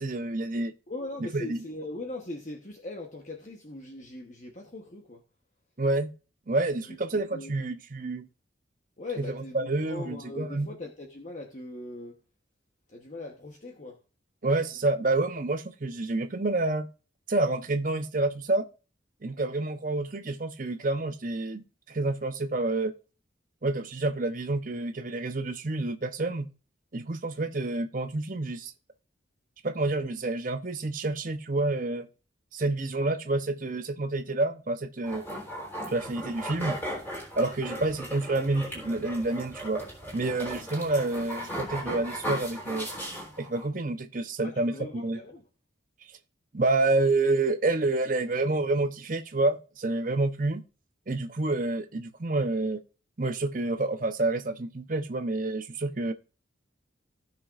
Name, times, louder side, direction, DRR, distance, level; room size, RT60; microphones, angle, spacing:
voice 1, 0.0-0.7 1.3-1.6 5.8-6.1 6.5-8.3 9.2-10.7 14.4-16.9 17.3-18.7 19.2-22.9 23.6-26.5 26.9-28.7 29.6-32.1 32.5-35.2 35.9-36.8 37.4-39.8 40.1-42.9 43.4-45.2 46.5-50.6 51.1-52.8 53.2-56.1, right 2 dB, 45° right, 0.8 m, -28 dB
voice 2, 0.9-5.2 6.9-7.0 7.3-7.5 9.0-12.1 12.9-14.0 14.7-14.8 44.4-45.5, left 2 dB, 40° left, 1.1 m, -40 dB
sound 1, 35.0-43.7, equal, 10° left, 3.7 m, -37 dB
16.5 x 6.1 x 2.5 m
head